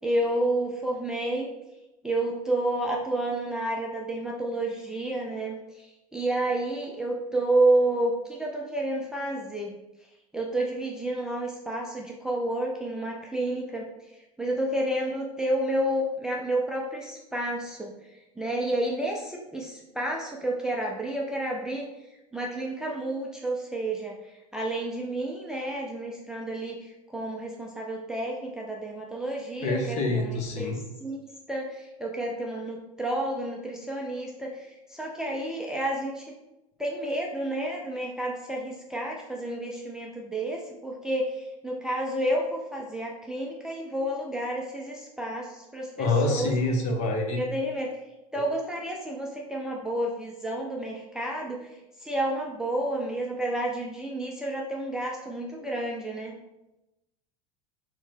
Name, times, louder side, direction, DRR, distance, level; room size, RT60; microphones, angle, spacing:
voice 1, 0.0-1.5 2.0-9.7 10.3-13.9 14.4-17.9 18.4-21.9 22.3-24.2 24.5-30.7 31.0-31.2 31.5-36.3 36.8-46.5 47.4-48.0 48.3-51.7 52.0-56.4, right 1 dB, 5° right, -2 dB, 0.4 m, -30 dB
voice 2, 29.6-30.8 46.0-47.4 48.3-48.4, left 2 dB, 40° left, 3 dB, 0.8 m, -26 dB
4.3 x 2.0 x 4.5 m, 0.97 s
figure-of-eight pair, 80°, 19 cm